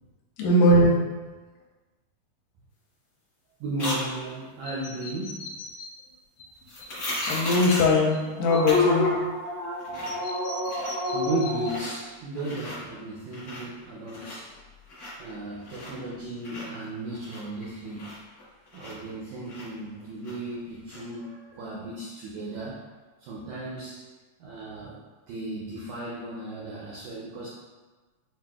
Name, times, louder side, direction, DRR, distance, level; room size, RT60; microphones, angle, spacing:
voice 1, 0.4-0.9 6.9-9.1, left 1 dB, 90° left, -3 dB, 2.3 m, -21 dB
voice 2, 3.6-5.4 11.1-14.5 15.2-18.1 18.7-22.8 23.2-24.0 24.4-25.0 25.3-27.5, right 2 dB, 85° right, -5 dB, 1.6 m, -35 dB
sound 1, 3.8-4.0 6.7-8.0 8.7-8.8 9.2-9.3 9.6-10.2 10.5-11.1 11.6-11.9 12.3-12.8 13.2-13.8 14.1-16.1 16.4-19.2 19.5-20.5 20.9-21.0, left 1 dB, 55° left, 1.0 m, -36 dB
sound 2, 4.6-5.9 6.4-6.5 6.8-6.9 7.2-7.3 7.7-7.8 8.1-11.8, left 2 dB, 70° left, 1.5 m, -29 dB
5.9 x 2.5 x 2.3 m, 1.3 s
omnidirectional pair, 3.8 m